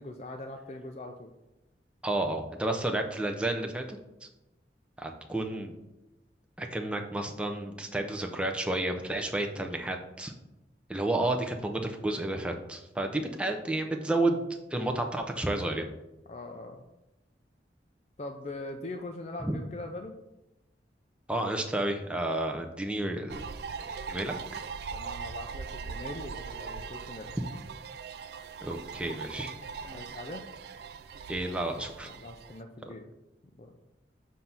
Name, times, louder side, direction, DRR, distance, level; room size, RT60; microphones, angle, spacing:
voice 1, 0.0-1.3 16.3-16.9 18.2-20.2 24.9-27.3 29.9-30.4 32.0-33.1 33.6-33.8, left 2 dB, 35° left, 3 dB, 0.5 m, -41 dB
voice 2, 2.0-3.8 5.0-5.7 6.6-10.3 10.9-14.4 14.7-15.9 19.4-19.5 21.3-23.4 23.8-24.3 28.6-29.5 31.3-32.1, right 1 dB, 5° right, 3 dB, 0.6 m, -31 dB
sound 1, 23.3-32.6, right 5 dB, 65° right, 0.3 m, -40 dB
7.5 x 2.7 x 5.8 m, 0.98 s
head